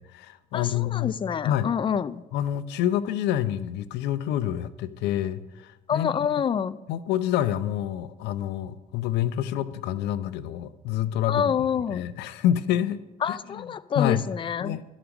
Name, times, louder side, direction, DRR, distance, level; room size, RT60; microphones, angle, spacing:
voice 1, 0.0-1.2 1.4-1.7 2.3-6.1 6.9-11.5 11.9-13.0 13.3-13.7 13.9-14.3 14.6-14.8, left 11 dB, 85° left, 15 dB, 0.6 m, -27 dB
voice 2, 0.5-2.2 5.9-6.8 11.3-12.0 13.2-14.8, left 7 dB, 30° left, 16 dB, 0.4 m, -27 dB
12.5 x 5.0 x 7.0 m, 1.1 s
cardioid pair, 110°, 17 cm